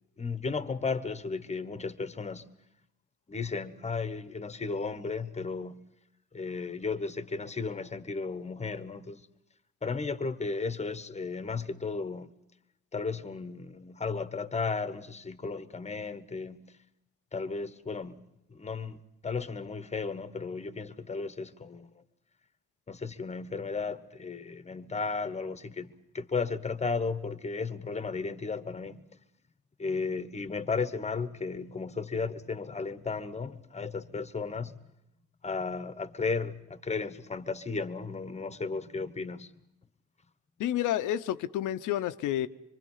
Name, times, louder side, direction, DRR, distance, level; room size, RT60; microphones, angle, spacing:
voice 1, 0.2-2.5 3.3-5.8 6.3-9.2 9.8-12.3 12.9-16.7 17.3-18.2 18.5-19.0 19.2-22.0 22.9-29.0 29.8-34.8 35.4-39.5, left 4 dB, 20° left, 1.1 m, -34 dB
voice 2, 40.6-42.5, left 12 dB, 85° left, 0.8 m, -29 dB
25.5 x 23.5 x 5.6 m
cardioid pair, 90°, 30 cm